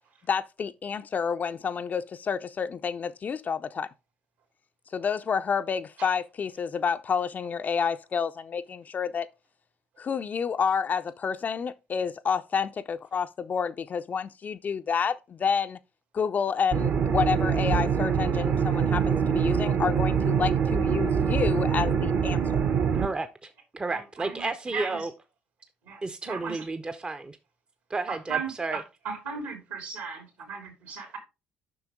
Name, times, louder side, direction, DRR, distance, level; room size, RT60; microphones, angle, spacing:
voice 1, 0.3-3.9 4.9-9.3 10.0-15.8 16.1-22.6, left 6 dB, 35° left, 0.5 m, -29 dB
sound 1, 16.7-23.1, right 7 dB, 45° right, 1.1 m, -24 dB
voice 2, 22.9-25.1 26.0-27.4 27.9-28.8, right 3 dB, 20° right, 0.7 m, -32 dB
voice 3, 23.9-25.1 25.8-26.6 28.1-31.2, right 6 dB, 70° right, 2.8 m, -37 dB
7.8 x 5.8 x 3.6 m
figure-of-eight pair, 50°, 5 cm